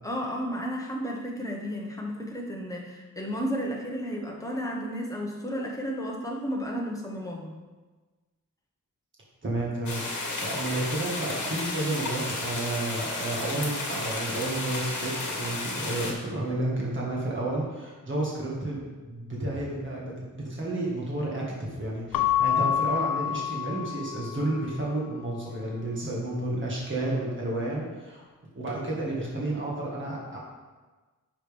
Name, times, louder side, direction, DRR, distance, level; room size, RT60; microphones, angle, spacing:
voice 1, 0.0-7.5, equal, 10° left, -2 dB, 1.3 m, -33 dB
voice 2, 9.4-18.8 19.1-28.2 28.6-30.4, right 2 dB, 35° right, -4 dB, 1.7 m, -31 dB
sound 1, 9.9-16.1, left 2 dB, 65° left, 1.5 m, -32 dB
Keyboard (musical) / Bell, 22.1-24.6, left 10 dB, 90° left, 0.5 m, -27 dB
9.9 x 6.0 x 3.5 m, 1.3 s
wide cardioid pair, 140°, 32 cm